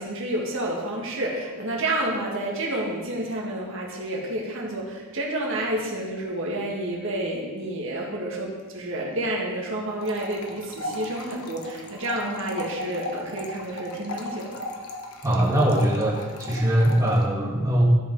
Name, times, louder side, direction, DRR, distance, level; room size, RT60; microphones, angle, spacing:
voice 1, 0.0-14.6, right 1 dB, 60° right, -2 dB, 1.8 m, -29 dB
sound 1, 10.0-17.3, left 2 dB, 75° left, 1.0 m, -37 dB
voice 2, 15.2-17.8, right 1 dB, 15° right, -5 dB, 1.4 m, -21 dB
12.5 x 5.1 x 4.7 m, 1.4 s
head